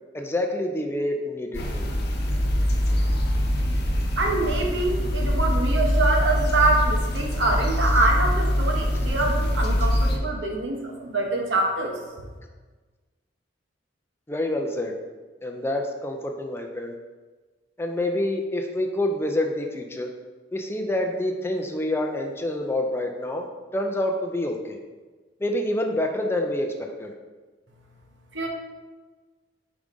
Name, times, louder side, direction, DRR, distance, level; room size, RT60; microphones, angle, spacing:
voice 1, 0.1-1.9 14.3-14.9 15.4-16.9 17.8-20.1 20.5-23.5 23.7-24.8 25.4-27.1, left 1 dB, 15° left, 2 dB, 0.5 m, -27 dB
sound 1, 1.5-10.2, equal, 60° left, 0.9 m, -23 dB
voice 2, 4.2-12.0 28.3-28.5, right 2 dB, 75° right, 1 dB, 1.0 m, -25 dB
4.8 x 3.9 x 5.2 m, 1.3 s
head